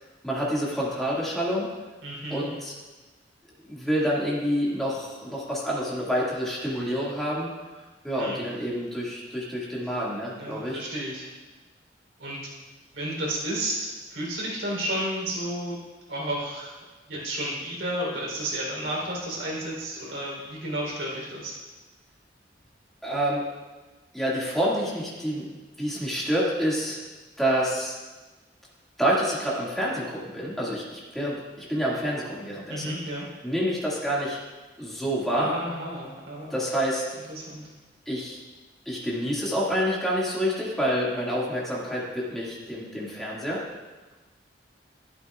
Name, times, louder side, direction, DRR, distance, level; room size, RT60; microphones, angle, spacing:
voice 1, 0.2-1.7 2.3-2.7 3.6-7.5 8.0-10.8 23.0-23.4 24.1-25.5 25.8-27.0 27.4-28.0 29.0-33.0 33.4-34.4 34.8-35.6 36.5-37.0 38.1-38.4 38.9-43.6, equal, ahead, -7 dB, 2.0 m, -28 dB
voice 2, 2.0-2.5 8.2-8.5 10.4-11.3 12.2-12.5 12.9-15.8 16.1-16.8 17.1-21.6 32.7-33.3 35.3-36.5 37.3-37.6, right 1 dB, 85° right, -4 dB, 3.7 m, -32 dB
12.5 x 11.5 x 2.4 m, 1.2 s
head